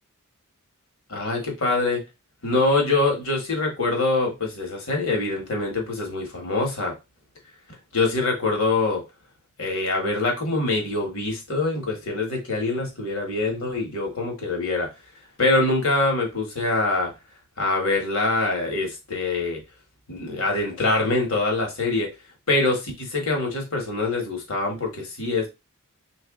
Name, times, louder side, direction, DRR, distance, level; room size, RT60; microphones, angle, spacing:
voice 1, 1.1-2.0 2.4-6.9 7.9-9.0 9.6-14.9 15.4-17.1 17.6-19.6 20.1-22.1 22.5-25.5, left 2 dB, 65° left, 1.4 m, -24 dB
3.3 x 2.7 x 3.6 m
head